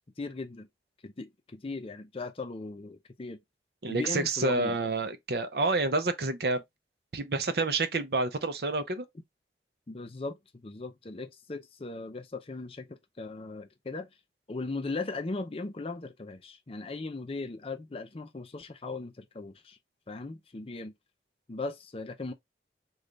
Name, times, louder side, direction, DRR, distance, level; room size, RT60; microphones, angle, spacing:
voice 1, 0.2-0.7 1.0-3.4 3.9-4.8 9.9-14.1 14.5-19.8 20.1-20.9 21.5-22.3, left 3 dB, 35° left, 0.5 m, -38 dB
voice 2, 3.8-6.6 7.1-9.1, right 3 dB, 60° right, 0.6 m, -28 dB
3.2 x 2.3 x 3.8 m
head